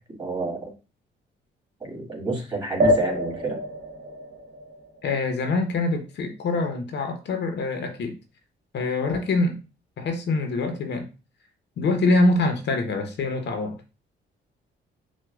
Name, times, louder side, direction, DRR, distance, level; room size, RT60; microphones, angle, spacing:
voice 1, 0.1-0.7 1.9-3.6, right 3 dB, 25° right, 2.2 m, -29 dB
sound 1, 2.8-5.8, equal, 50° right, 0.8 m, -26 dB
voice 2, 5.0-8.2 8.7-9.6 10.0-11.1 11.8-13.8, left 2 dB, 60° left, 0.8 m, -24 dB
6.0 x 2.3 x 2.3 m
cardioid pair, 90°, 20 cm